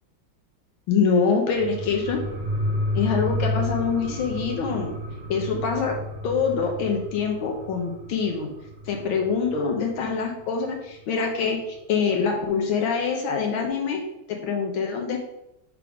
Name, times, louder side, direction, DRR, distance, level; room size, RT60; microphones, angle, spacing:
voice 1, 0.9-2.2 3.0-4.9 5.3-6.0 6.2-8.5 8.9-14.0 14.3-15.2, left 5 dB, 90° left, 1 dB, 1.8 m, -25 dB
sound 1, 1.5-10.6 11.0-11.1, left 1 dB, 65° right, 1.6 m, -31 dB
8.0 x 3.5 x 5.2 m, 0.87 s
omnidirectional pair, 2.1 m